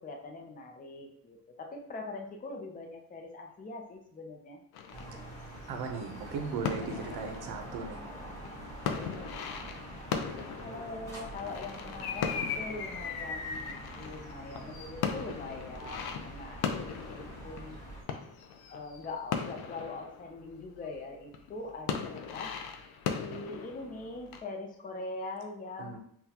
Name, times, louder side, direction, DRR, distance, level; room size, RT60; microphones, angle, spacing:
voice 1, 0.0-4.6 10.6-17.8 18.7-22.6 23.2-26.0, left 3 dB, 25° left, 1 dB, 0.5 m, -42 dB
sound 1, 4.7-21.0 21.3-24.4, left 6 dB, 90° left, 0.6 m, -38 dB
sound 2, 4.9-18.0, right 1 dB, 10° left, 1.1 m, -45 dB
voice 2, 5.7-8.0 25.8-26.0, right 5 dB, 90° right, 4 dB, 0.7 m, -37 dB
5.7 x 2.2 x 2.8 m, 0.67 s
cardioid pair, 130°, 37 cm